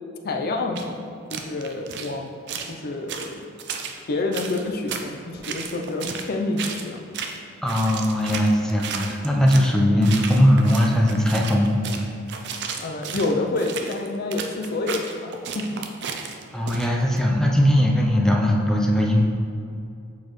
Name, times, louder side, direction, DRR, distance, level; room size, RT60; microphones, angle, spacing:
voice 1, 0.2-2.3 2.7-3.5 4.1-7.0 12.8-15.8, left 2 dB, 50° left, 3 dB, 0.5 m, -28 dB
sound 1, 0.8-0.9 1.3-2.1 2.5-2.7 3.1-4.0 4.3-5.1 5.4-6.3 6.6-6.9 7.1-7.4 7.7-9.7 10.0-17.2, right 6 dB, 55° right, 0.5 m, -33 dB
voice 2, 7.6-11.7 16.5-19.2, equal, 5° left, -1 dB, 0.6 m, -19 dB
7.2 x 4.2 x 3.1 m, 2.5 s
head